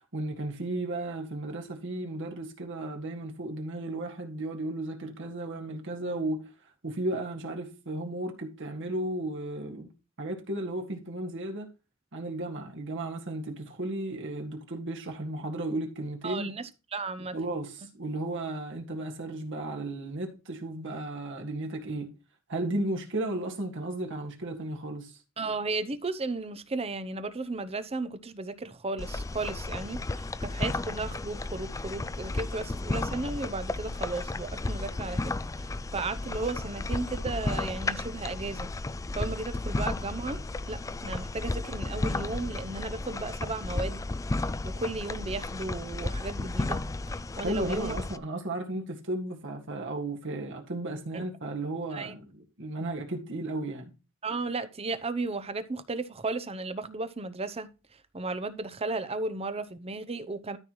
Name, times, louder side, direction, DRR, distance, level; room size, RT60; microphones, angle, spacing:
voice 1, 0.1-6.5 6.8-9.9 10.2-11.7 12.1-16.5 17.2-22.1 22.5-25.2 47.4-52.3 52.6-53.9, right 1 dB, 60° right, 1.9 m, -34 dB
voice 2, 16.2-17.4 25.4-38.7 39.1-44.0 44.6-46.9 47.4-47.9 51.1-51.2 51.9-52.2 54.2-57.7 58.1-60.6, right 3 dB, 30° right, 0.7 m, -35 dB
sound 1, 29.0-48.2, left 2 dB, 15° left, 0.3 m, -33 dB
13.0 x 5.7 x 3.1 m
head